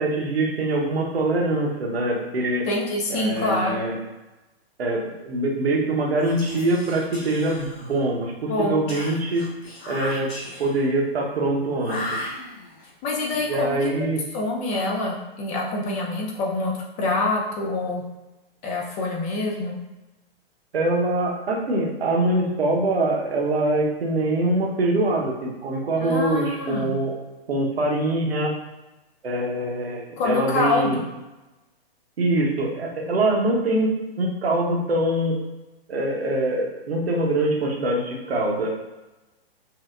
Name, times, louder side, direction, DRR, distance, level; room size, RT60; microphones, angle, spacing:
voice 1, 0.0-2.7 3.1-4.0 4.8-9.4 9.9-10.3 10.6-12.4 13.5-14.2 20.7-27.1 27.5-28.5 29.2-31.0 32.2-35.4 35.9-38.7, right 2 dB, 80° right, -1 dB, 1.1 m, -24 dB
voice 2, 2.7-3.8 8.5-8.8 13.0-14.1 14.3-16.7 17.0-18.0 18.6-19.7 26.0-26.9 30.2-31.1, left 2 dB, 25° left, -1 dB, 0.7 m, -26 dB
Whispering, 6.1-8.1 8.9-10.9 11.8-12.8, left 2 dB, 45° left, 1.3 m, -36 dB
6.2 x 2.2 x 2.5 m, 1.1 s
hypercardioid pair, 130°, 30 cm